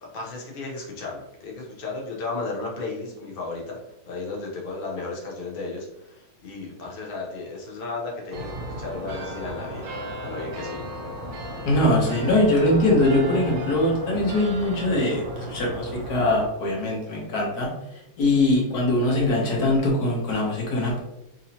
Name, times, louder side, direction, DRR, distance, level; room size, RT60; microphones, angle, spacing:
voice 1, 0.0-3.8 4.1-9.9 10.2-10.8, left 3 dB, 85° left, -2 dB, 0.5 m, -34 dB
sound 1, 8.3-16.5, right 1 dB, 75° right, 1.2 m, -35 dB
voice 2, 11.6-17.7 18.2-21.0, left 1 dB, 60° left, -2 dB, 1.3 m, -22 dB
3.9 x 2.8 x 2.8 m, 0.87 s
omnidirectional pair, 2.2 m